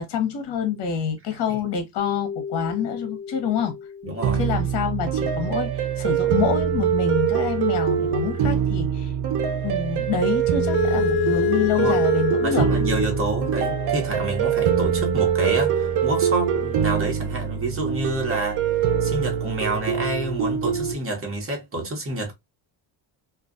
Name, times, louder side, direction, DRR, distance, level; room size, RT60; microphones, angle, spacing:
voice 1, 0.0-3.8 4.4-9.1 9.6-12.7, left 7 dB, 60° left, 0.9 m, -27 dB
sound 1, 2.0-4.9 10.4-15.3, left 15 dB, 35° left, 0.5 m, -30 dB
voice 2, 4.0-4.4 11.7-12.0 12.4-18.6 19.0-22.3, right 1 dB, 30° right, 1.0 m, -28 dB
sound 2, 4.2-20.9, right 8 dB, 55° right, 0.7 m, -23 dB
2.4 x 2.3 x 2.4 m
cardioid pair, 125°, 45 cm